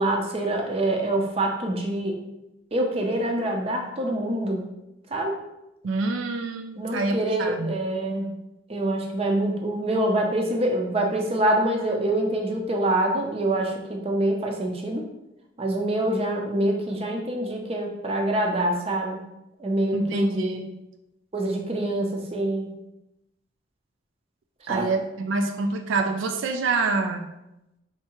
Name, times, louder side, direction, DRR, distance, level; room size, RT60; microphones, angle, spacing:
voice 1, 0.0-2.2 2.7-4.7 5.1-5.4 6.8-8.4 8.7-15.0 15.6-19.2 19.6-20.6 21.3-22.7 24.7-24.9, right 1 dB, 30° right, 2 dB, 0.5 m, -25 dB
voice 2, 5.8-7.7 19.9-20.7 24.7-27.3, right 3 dB, 80° right, 7 dB, 0.3 m, -26 dB
4.6 x 3.2 x 3.0 m, 0.91 s
head